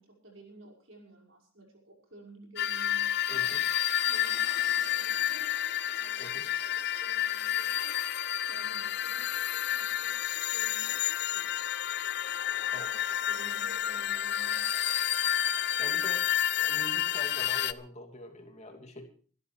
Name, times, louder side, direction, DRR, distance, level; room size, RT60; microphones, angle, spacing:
voice 1, 0.0-3.5 4.1-6.6 7.0-8.1 8.5-11.6 12.1-14.6, right 2 dB, 65° right, 0 dB, 5.6 m, -53 dB
sound 1, 2.6-17.7, left 11 dB, 50° left, 0.6 m, -30 dB
voice 2, 3.3-3.6 6.2-6.4 12.7-12.9 15.8-16.3 16.6-19.1, left 1 dB, 30° left, 3 dB, 2.8 m, -45 dB
24.5 x 12.5 x 3.4 m, 0.42 s
head